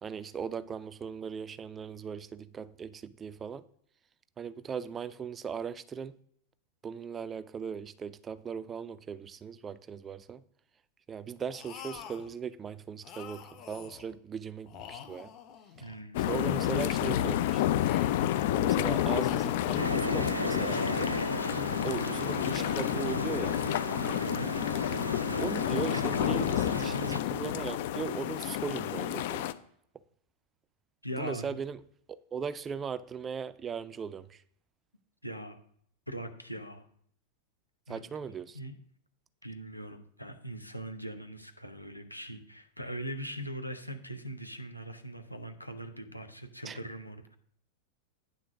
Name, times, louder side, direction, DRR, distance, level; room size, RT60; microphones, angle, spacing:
voice 1, 0.0-3.7 4.4-6.2 6.8-10.4 11.1-15.3 16.3-17.8 18.5-21.1 21.8-23.6 25.4-29.5 31.2-31.8 32.1-34.4 37.9-38.6 46.6-46.8, right 6 dB, 20° right, 0.4 m, -38 dB
sound 1, 11.5-12.3 13.0-14.1 14.6-16.0 16.4-17.2 17.7-18.4 19.0-20.0, left 8 dB, 35° left, 1.0 m, -47 dB
voice 2, 15.8-16.2 24.2-24.7 25.3-25.5 31.0-31.6 35.2-35.6 36.1-36.8 37.9-38.1 38.5-38.8 39.4-47.4, right 1 dB, 90° left, 0.9 m, -41 dB
sound 2, 16.1-29.5, left 12 dB, 50° left, 0.4 m, -30 dB
sound 3, 19.8-27.2, right 1 dB, 85° right, 0.4 m, -35 dB
9.4 x 3.8 x 6.0 m
figure-of-eight pair, 90°, 0 cm